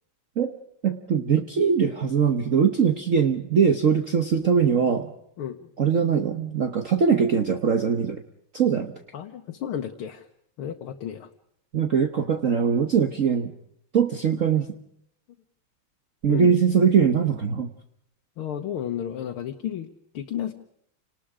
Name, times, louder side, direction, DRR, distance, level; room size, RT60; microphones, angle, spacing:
voice 1, 0.8-5.1 5.8-8.2 8.5-8.9 11.7-13.5 13.9-14.6 16.2-17.7, right 6 dB, 45° right, 6 dB, 1.3 m, -21 dB
voice 2, 5.4-5.7 9.1-10.3 10.6-11.3 16.3-16.5 18.4-19.9 20.1-20.5, left 9 dB, 85° left, 4 dB, 2.0 m, -32 dB
29.5 x 19.5 x 5.0 m, 0.72 s
omnidirectional pair, 2.3 m